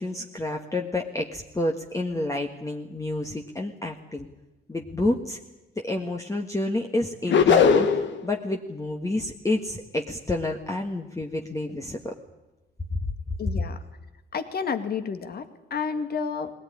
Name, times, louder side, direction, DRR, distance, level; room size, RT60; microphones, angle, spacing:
voice 1, 0.0-4.3 4.7-5.4 5.8-7.9 8.2-12.1, left 2 dB, 15° left, 2 dB, 1.6 m, -29 dB
sound 1, 7.3-8.2, left 6 dB, 70° left, 1.7 m, -18 dB
voice 2, 13.4-13.8 14.3-16.5, left 6 dB, 50° left, 8 dB, 2.1 m, -30 dB
20.5 x 18.0 x 9.9 m, 1.0 s
cardioid pair, 90°, 20 cm